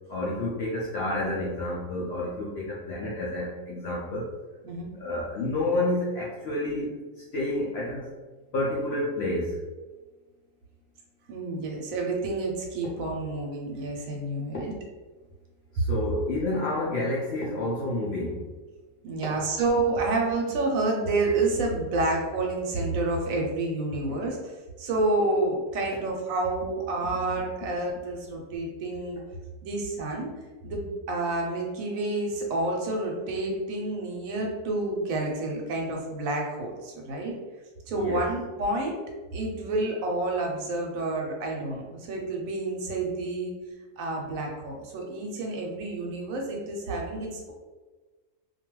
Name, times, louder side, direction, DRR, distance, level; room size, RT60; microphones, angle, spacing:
voice 1, 0.1-4.3 5.0-8.1 8.5-9.6 15.7-18.4 19.2-19.3 37.9-38.3, left 1 dB, 70° left, -5 dB, 0.6 m, -29 dB
voice 2, 11.3-14.7 19.0-29.2 29.6-30.3 30.6-37.3 37.9-39.0 39.3-43.5 44.0-47.5, right 2 dB, 70° right, 0 dB, 1.0 m, -29 dB
2.5 x 2.3 x 3.0 m, 1.3 s
omnidirectional pair, 1.6 m